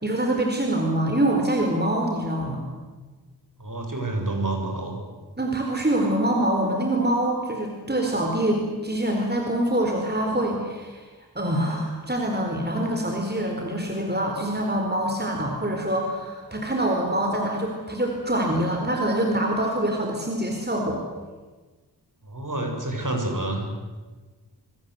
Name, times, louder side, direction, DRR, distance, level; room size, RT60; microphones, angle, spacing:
voice 1, 0.0-2.6 5.4-11.1 11.3-21.0, right 1 dB, 25° right, 1 dB, 4.4 m, -25 dB
voice 2, 3.6-5.0 22.2-23.7, right 2 dB, 50° right, 2 dB, 7.0 m, -28 dB
25.5 x 24.5 x 8.1 m, 1.3 s
wide cardioid pair, 60°, 40 cm